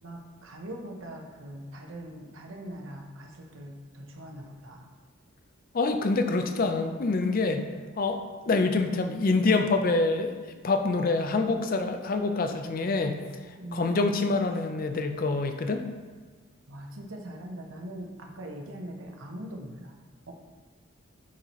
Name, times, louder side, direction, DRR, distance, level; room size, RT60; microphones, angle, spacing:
voice 1, 0.0-4.9 13.6-13.9 16.7-19.9 20.3-20.4, right 1 dB, 75° right, 1 dB, 0.9 m, -41 dB
voice 2, 5.7-7.7 8.0-8.2 8.5-13.2 13.5-15.9, left 3 dB, 45° left, 7 dB, 0.5 m, -26 dB
8.6 x 4.2 x 3.0 m, 1.4 s
head